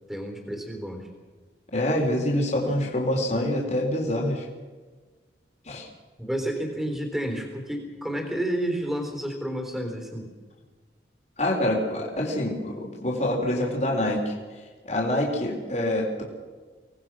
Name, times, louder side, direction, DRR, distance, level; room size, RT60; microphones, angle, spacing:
voice 1, 0.1-1.1 6.2-10.3, right 1 dB, ahead, 3 dB, 3.8 m, -30 dB
voice 2, 1.7-4.5 5.7-5.9 11.4-14.3 14.8-16.2, left 1 dB, 40° left, 0 dB, 3.7 m, -26 dB
25.5 x 18.5 x 6.2 m, 1.4 s
head